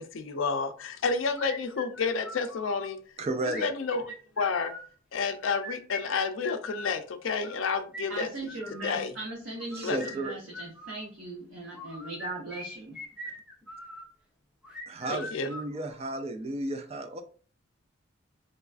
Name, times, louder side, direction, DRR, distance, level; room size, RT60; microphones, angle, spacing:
voice 1, 0.0-3.0 3.5-4.7 5.1-8.3 8.8-9.1 9.8-10.0 15.1-15.5, left 4 dB, 70° left, 0.4 m, -30 dB
sound 1, 1.4-2.9 3.5-4.9 5.4-6.9 7.4-9.0 9.6-11.0 11.7-14.1 14.6-16.1, left 1 dB, 5° right, 0.7 m, -41 dB
voice 2, 3.2-3.7 9.8-10.3 14.9-17.2, right 2 dB, 30° right, 0.3 m, -33 dB
voice 3, 8.1-13.0, right 2 dB, 80° right, 1.2 m, -39 dB
3.9 x 2.3 x 2.4 m
head